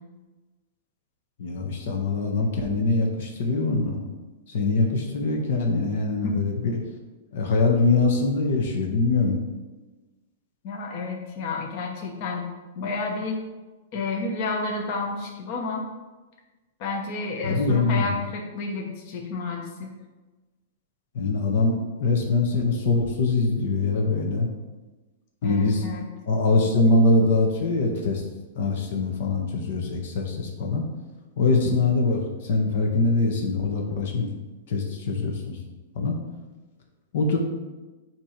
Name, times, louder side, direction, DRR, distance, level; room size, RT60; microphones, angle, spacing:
voice 1, 1.4-4.0 4.5-6.8 7.3-9.4 17.4-18.1 21.1-24.5 25.4-25.8 26.3-28.2 28.5-30.8 31.4-34.3 34.7-35.6 35.9-36.2 37.1-37.4, left 3 dB, 60° left, 2 dB, 1.0 m, -23 dB
voice 2, 10.6-12.5 12.8-13.4 13.9-15.9 16.8-19.9 25.4-26.0, left 3 dB, 40° left, 1 dB, 1.0 m, -30 dB
8.4 x 3.0 x 5.0 m, 1.2 s
supercardioid pair, 160°, 0 cm